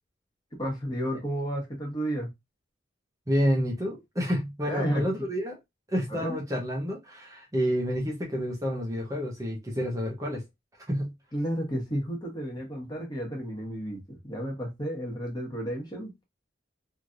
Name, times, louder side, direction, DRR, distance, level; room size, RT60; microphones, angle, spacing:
voice 1, 0.6-2.3 4.6-5.3 6.1-6.4 11.3-16.2, equal, 25° left, 1.2 m, -32 dB
voice 2, 3.3-5.6 5.9-10.4 10.9-11.1, equal, 20° right, 0.7 m, -29 dB
3.1 x 2.7 x 2.5 m
head